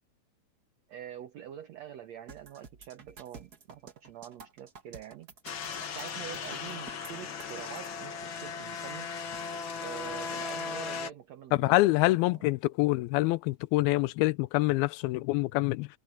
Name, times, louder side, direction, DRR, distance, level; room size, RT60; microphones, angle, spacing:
voice 1, 0.9-5.3 5.9-9.1 9.8-12.4, right 10 dB, 85° right, 1.5 m, -45 dB
sound 1, 2.3-7.9, right 5 dB, 65° right, 0.9 m, -50 dB
sound 2, 5.4-11.1, left 5 dB, 65° left, 1.2 m, -37 dB
voice 2, 11.6-15.9, left 20 dB, 85° left, 2.4 m, -26 dB
omnidirectional pair, 4.4 m